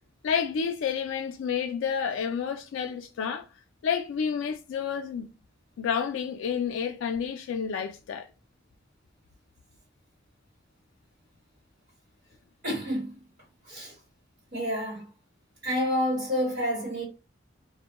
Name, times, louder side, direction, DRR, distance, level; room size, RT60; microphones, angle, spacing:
voice 1, 0.2-3.4 3.8-5.3 5.8-8.3, left 7 dB, 85° left, 0.3 m, -30 dB
voice 2, 12.6-13.2 13.7-13.9 14.5-15.0 15.6-17.0, equal, 50° right, 1.3 m, -28 dB
2.1 x 2.1 x 2.9 m
head